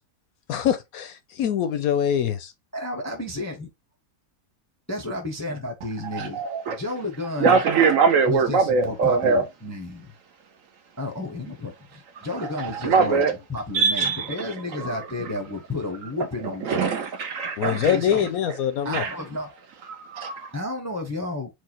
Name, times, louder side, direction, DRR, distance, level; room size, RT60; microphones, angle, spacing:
voice 1, 0.5-2.5 17.6-19.0, left 9 dB, 70° left, 0.9 m, -24 dB
voice 2, 2.7-3.7 4.9-7.6 8.3-10.1 11.0-13.2 13.5-17.1 17.6-18.3 18.8-19.6 20.5-21.5, left 2 dB, 20° left, 0.4 m, -32 dB
voice 3, 6.1-6.8 7.4-9.4 12.3-13.3 13.7-15.3 16.6-18.0 18.9-19.1 19.9-20.5, right 5 dB, 65° right, 0.9 m, -23 dB
4.7 x 2.3 x 4.3 m
omnidirectional pair, 1.8 m